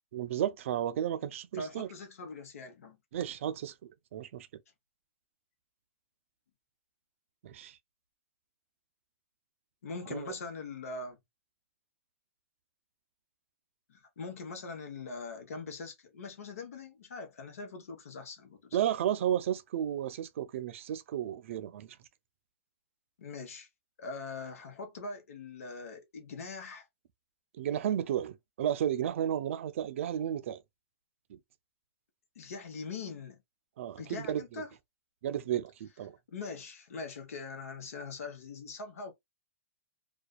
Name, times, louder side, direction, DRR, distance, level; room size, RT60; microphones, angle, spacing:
voice 1, 0.1-1.9 3.1-4.5 7.4-7.8 10.1-10.3 18.7-22.0 27.6-30.6 31.3-31.4 33.8-34.6 35.2-36.2, right 10 dB, 65° right, 0.4 m, -33 dB
voice 2, 1.6-3.0 9.8-11.2 13.9-18.8 23.2-23.7 24.0-26.9 32.3-33.4 34.0-34.7 36.3-39.1, left 4 dB, 80° left, 0.9 m, -42 dB
2.4 x 2.2 x 2.2 m
hypercardioid pair, 140°, 8 cm